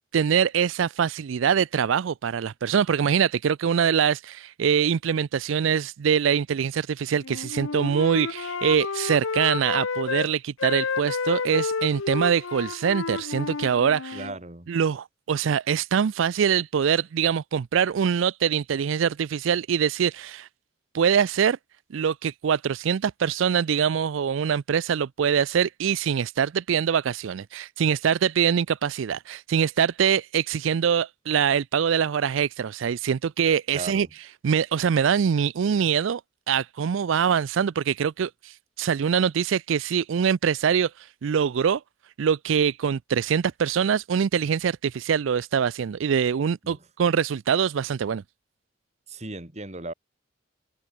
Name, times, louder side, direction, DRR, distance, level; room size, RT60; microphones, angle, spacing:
voice 1, 0.1-14.3 14.7-20.5 20.9-21.6 21.9-34.1 34.4-36.2 36.5-41.8 42.2-48.2, right 7 dB, 75° right, 0.4 m, -24 dB
Wind instrument woodwind instrument, 7.2-10.3 10.6-14.4, left 4 dB, 85° left, 0.8 m, -30 dB
voice 2, 14.1-14.7 33.7-34.1 46.6-46.8 49.1-49.9, right 2 dB, 35° right, 2.1 m, -36 dB
head